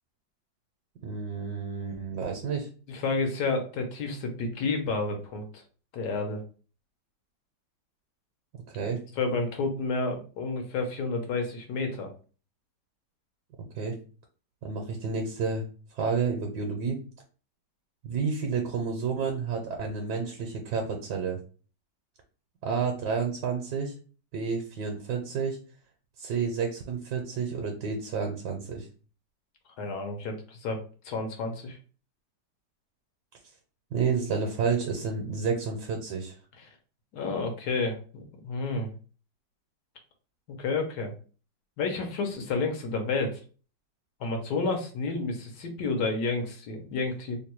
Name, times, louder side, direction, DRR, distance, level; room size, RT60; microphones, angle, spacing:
voice 1, 1.0-2.7 8.7-9.0 13.7-13.9 14.6-15.6 16.0-17.0 18.0-21.4 22.6-23.9 24.3-25.6 26.2-28.9 33.9-36.4, right 5 dB, 70° right, 2 dB, 1.2 m, -30 dB
voice 2, 2.9-5.6 5.9-6.4 9.2-12.1 29.8-30.8 31.0-31.8 36.6-36.7 37.1-38.9 40.5-41.1 41.8-43.4 44.2-47.4, left 3 dB, 70° left, 4 dB, 1.3 m, -30 dB
3.2 x 2.2 x 4.3 m, 0.38 s
omnidirectional pair, 2.0 m